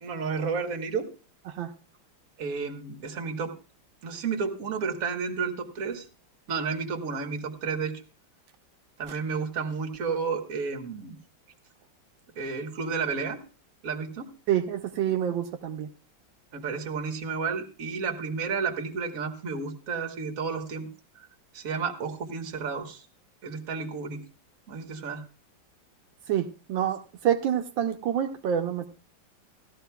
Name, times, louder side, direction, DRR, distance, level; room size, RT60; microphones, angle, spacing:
voice 1, 0.0-1.1 2.4-3.6 4.0-6.1 6.5-8.0 9.0-11.1 12.4-13.4 13.8-14.3 16.5-20.9 21.2-21.3 21.5-23.0 23.4-24.2 24.7-25.2, right 5 dB, 50° right, 4 dB, 1.7 m, -31 dB
voice 2, 14.5-15.9 26.3-28.9, right 10 dB, 85° right, 4 dB, 1.5 m, -27 dB
16.5 x 13.0 x 2.2 m, 0.34 s
omnidirectional pair, 2.0 m